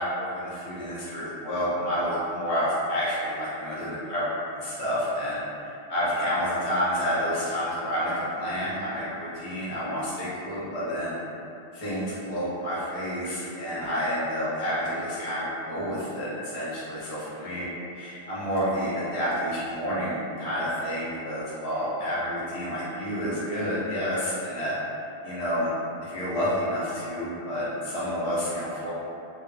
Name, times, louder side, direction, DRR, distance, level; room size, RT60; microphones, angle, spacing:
voice 1, 0.0-4.2 4.5-5.4 5.9-11.1 11.7-17.7 17.9-24.7 25.2-25.7 26.0-28.9, equal, 40° left, -9 dB, 0.6 m, -29 dB
2.3 x 2.1 x 3.0 m, 2.6 s
omnidirectional pair, 1.1 m